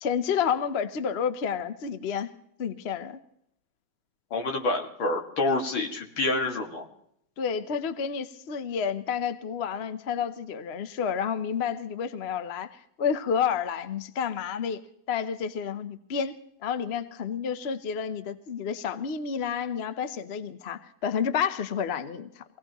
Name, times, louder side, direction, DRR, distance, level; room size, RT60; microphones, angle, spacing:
voice 1, 0.0-2.3 2.6-3.2 7.4-14.8 15.1-22.4, left 7 dB, 50° left, 11 dB, 0.7 m, -30 dB
voice 2, 4.3-6.9, left 2 dB, 70° left, 3 dB, 2.7 m, -27 dB
25.0 x 18.0 x 3.0 m, 0.73 s
omnidirectional pair, 2.2 m